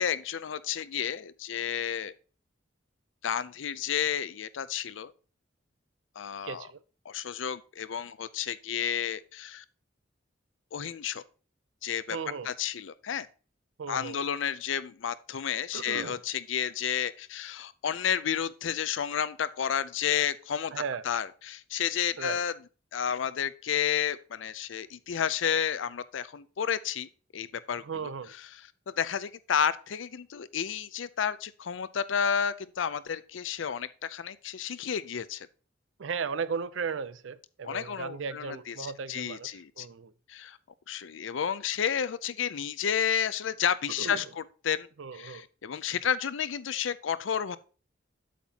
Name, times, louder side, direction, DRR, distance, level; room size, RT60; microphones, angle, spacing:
voice 1, 0.0-2.1 3.2-5.1 6.2-6.7 7.1-9.6 10.7-11.2 11.8-12.2 12.4-13.3 13.9-20.7 21.0-22.5 22.9-27.8 28.9-35.5 37.6-39.9 40.3-40.6 40.9-44.9 45.1-47.6, left 8 dB, 90° left, 0.5 m, -31 dB
voice 2, 6.4-6.8 12.1-12.5 13.8-14.2 15.7-16.2 20.7-21.0 22.2-22.4 27.8-28.3 36.0-40.1 44.0-44.3 45.0-45.5, right 5 dB, 90° right, 0.5 m, -36 dB
8.4 x 7.3 x 2.8 m
head